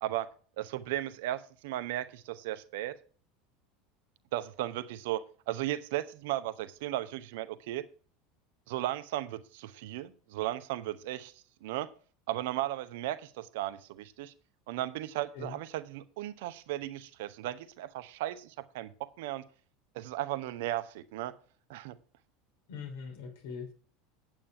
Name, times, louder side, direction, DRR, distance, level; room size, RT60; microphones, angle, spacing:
voice 1, 0.6-2.9 4.3-7.8 8.7-11.9 12.3-14.3 14.7-19.4 19.9-21.3 21.7-22.0, right 14 dB, 60° right, 13 dB, 0.9 m, -36 dB
voice 2, 22.7-23.7, left 5 dB, 60° left, 4 dB, 3.4 m, -42 dB
9.1 x 8.7 x 4.7 m, 0.40 s
figure-of-eight pair, 75°, 0 cm